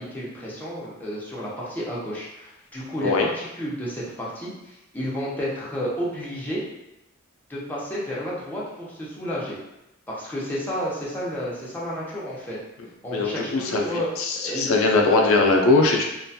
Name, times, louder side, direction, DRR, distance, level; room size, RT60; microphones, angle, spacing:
voice 1, 0.0-6.6 7.5-9.6 10.1-12.6 13.0-14.7, equal, 10° left, -7 dB, 0.6 m, -31 dB
voice 2, 13.1-16.0, left 3 dB, 70° left, 1 dB, 0.4 m, -20 dB
2.4 x 2.2 x 2.6 m, 0.91 s
head